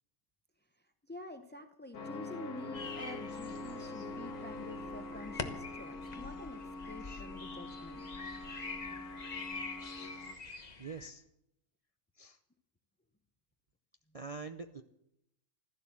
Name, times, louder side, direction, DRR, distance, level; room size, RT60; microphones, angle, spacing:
voice 1, 1.1-8.1, left 2 dB, 15° left, 7 dB, 0.4 m, -48 dB
sound 1, 1.9-10.3, left 2 dB, 75° left, 1.6 m, -44 dB
sound 2, 2.7-11.1, left 4 dB, 30° left, 1.1 m, -45 dB
sound 3, 3.1-9.5, right 5 dB, 50° right, 2.9 m, -61 dB
voice 2, 10.5-11.2 12.2-12.4 14.1-14.8, right 4 dB, 65° right, 7 dB, 0.3 m, -45 dB
15.5 x 12.5 x 7.3 m, 0.80 s
omnidirectional pair, 1.6 m